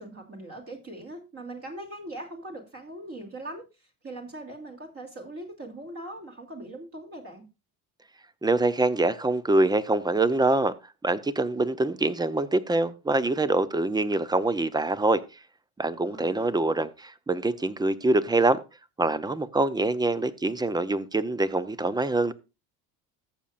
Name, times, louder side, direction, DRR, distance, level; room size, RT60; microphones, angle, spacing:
voice 1, 0.0-7.4 16.1-16.5, right 1 dB, 35° right, 2.8 m, -41 dB
voice 2, 8.4-10.7 11.0-15.2 15.8-18.6 19.0-22.3, right 2 dB, 10° right, 0.6 m, -25 dB
14.0 x 7.3 x 2.5 m
supercardioid pair, 100°, 42 cm